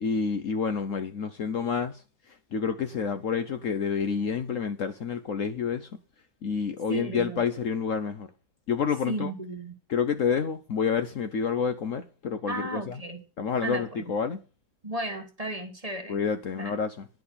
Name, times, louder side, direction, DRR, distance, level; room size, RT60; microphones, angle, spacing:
voice 1, 0.0-2.0 2.5-5.9 6.4-8.3 8.7-9.3 9.9-13.0 13.4-14.4 16.1-17.1, left 6 dB, 60° left, 1.0 m, -28 dB
voice 2, 6.9-7.4 9.1-9.7 12.5-13.2 13.6-14.1 14.8-16.2 16.5-16.7, right 1 dB, 25° right, 1.5 m, -34 dB
10.5 x 5.8 x 8.3 m
omnidirectional pair, 1.8 m